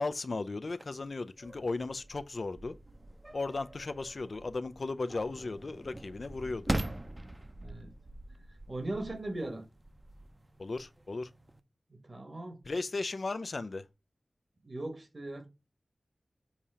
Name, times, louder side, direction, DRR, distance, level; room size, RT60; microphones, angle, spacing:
voice 1, 0.0-2.8 3.3-6.7 10.6-11.3 12.6-13.9, left 3 dB, 65° left, 0.4 m, -36 dB
sound 1, 0.6-11.6, right 1 dB, 25° right, 0.7 m, -42 dB
voice 2, 7.6-7.9 8.7-9.6 11.9-12.6 14.6-15.5, right 2 dB, 50° right, 1.4 m, -39 dB
7.2 x 2.8 x 4.9 m
wide cardioid pair, 65°, 0 cm